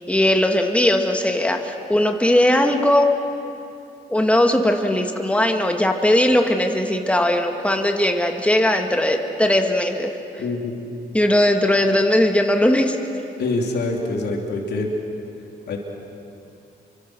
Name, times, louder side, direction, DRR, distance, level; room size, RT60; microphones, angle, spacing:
voice 1, 0.1-3.1 4.1-10.1 11.1-13.0, left 1 dB, 5° left, 4 dB, 2.2 m, -19 dB
voice 2, 10.4-10.9 13.4-14.9 15.7-15.8, left 2 dB, 75° left, 1 dB, 3.3 m, -25 dB
29.0 x 24.5 x 6.4 m, 2.7 s
cardioid pair, 80°, 17 cm